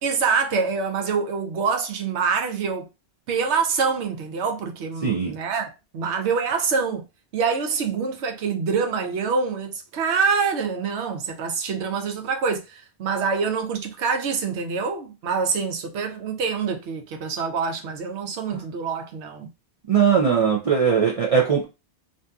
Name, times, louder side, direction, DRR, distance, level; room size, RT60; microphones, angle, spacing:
voice 1, 0.0-2.9 3.3-7.0 7.3-19.5, right 5 dB, 90° right, 0.9 m, -25 dB
voice 2, 5.0-5.3 19.9-21.6, right 6 dB, 50° right, 0.4 m, -19 dB
2.6 x 2.5 x 2.3 m
omnidirectional pair, 1.1 m